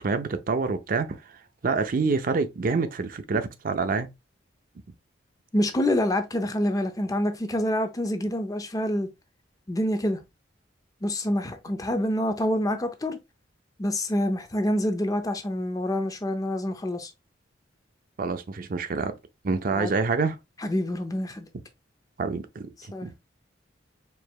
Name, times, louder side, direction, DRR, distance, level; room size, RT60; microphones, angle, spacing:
voice 1, 0.0-1.4 1.6-4.1 18.2-19.1 19.4-20.4 22.2-22.7 23.0-23.2, right 4 dB, 50° right, 0.5 m, -27 dB
voice 2, 5.5-9.1 9.7-10.2 11.0-13.2 13.8-17.1 19.7-19.9 20.6-21.5 22.9-23.1, left 1 dB, 20° left, 0.5 m, -27 dB
4.6 x 3.2 x 2.4 m
head